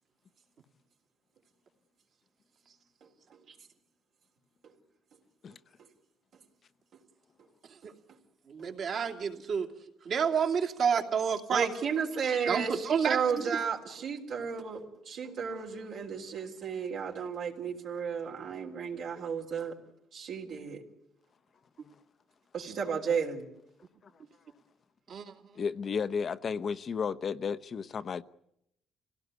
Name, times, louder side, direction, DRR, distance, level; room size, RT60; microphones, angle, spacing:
voice 1, 8.5-9.7 10.0-11.7 12.5-13.6 25.1-25.3, right 6 dB, 60° right, 2.6 m, -29 dB
voice 2, 11.5-19.7 20.1-20.8 22.5-23.5, right 6 dB, 80° right, 3.7 m, -33 dB
voice 3, 25.6-28.2, left 6 dB, 50° left, 0.9 m, -33 dB
26.0 x 17.5 x 9.5 m
cardioid pair, 90°, 0 cm